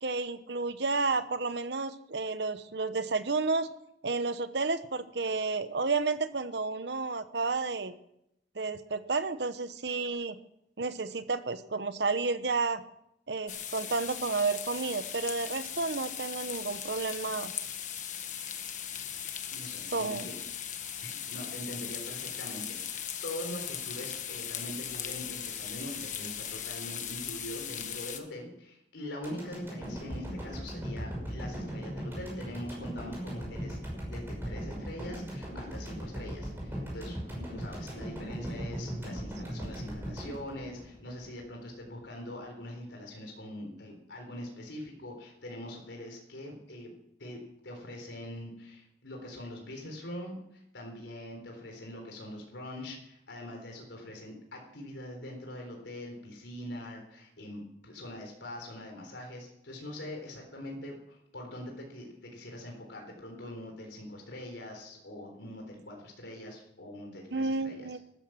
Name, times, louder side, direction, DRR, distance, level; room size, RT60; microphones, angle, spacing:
voice 1, 0.0-3.7 4.0-7.9 8.5-10.4 10.8-12.8 13.3-17.5 19.9-20.3 67.3-68.0, right 3 dB, 70° right, 12 dB, 1.0 m, -31 dB
sound 1, 13.5-28.2, left 9 dB, 45° left, 1.4 m, -38 dB
voice 2, 19.5-20.5 21.0-33.8 34.1-68.0, left 1 dB, 80° left, 2 dB, 3.9 m, -43 dB
sound 2, 29.2-41.5 41.8-41.9, equal, 10° right, 6.0 m, -38 dB
13.5 x 13.0 x 6.0 m, 0.78 s
head